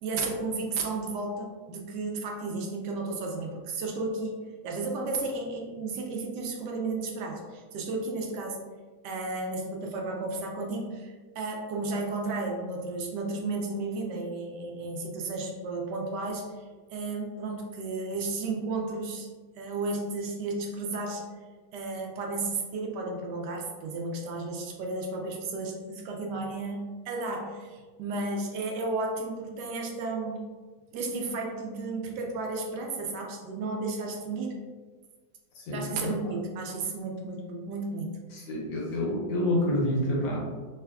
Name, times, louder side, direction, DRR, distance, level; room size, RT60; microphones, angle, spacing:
voice 1, 0.0-8.6 9.0-16.6 16.9-19.3 19.6-21.2 21.7-30.4 30.9-34.6 35.7-38.1, right 3 dB, 75° right, 1 dB, 1.1 m, -33 dB
voice 2, 35.6-36.1 38.3-40.4, left 1 dB, 90° left, -3 dB, 1.6 m, -28 dB
3.4 x 3.2 x 2.3 m, 1.4 s
omnidirectional pair, 2.0 m